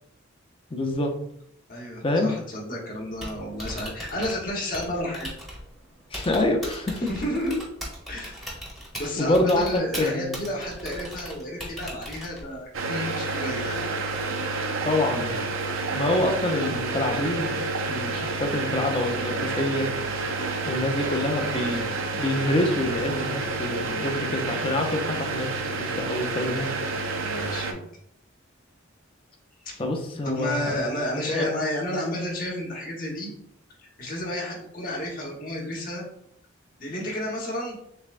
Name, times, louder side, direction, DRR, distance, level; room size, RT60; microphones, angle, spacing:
voice 1, 0.7-1.1 2.0-2.3 6.1-7.1 9.2-10.4 14.8-15.4 15.9-17.5 17.9-19.9 20.7-21.8 22.1-26.7 29.8-30.8 31.3-31.5, left 1 dB, 25° left, 2 dB, 0.5 m, -26 dB
voice 2, 1.7-5.3 7.0-7.6 8.1-8.4 8.9-13.9 27.2-27.8 29.6-29.8 30.2-33.3 33.8-36.0 36.8-37.8, equal, 40° left, -2 dB, 1.1 m, -31 dB
Typing, 3.0-12.6, equal, ahead, 0.9 m, -39 dB
sound 1, 12.7-27.7, right 3 dB, 70° right, 0.5 m, -29 dB
6.6 x 2.2 x 2.5 m, 0.72 s
head